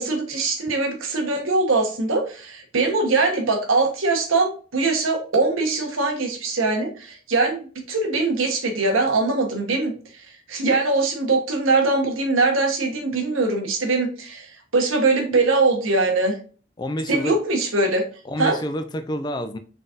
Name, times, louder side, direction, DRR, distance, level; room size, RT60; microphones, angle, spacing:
voice 1, 0.0-9.9 10.5-16.4 17.1-18.0 18.4-18.6, right 3 dB, 85° right, 3 dB, 1.1 m, -22 dB
voice 2, 16.8-17.4 18.2-19.6, equal, 20° left, 9 dB, 0.3 m, -28 dB
3.9 x 3.9 x 2.5 m, 0.39 s
head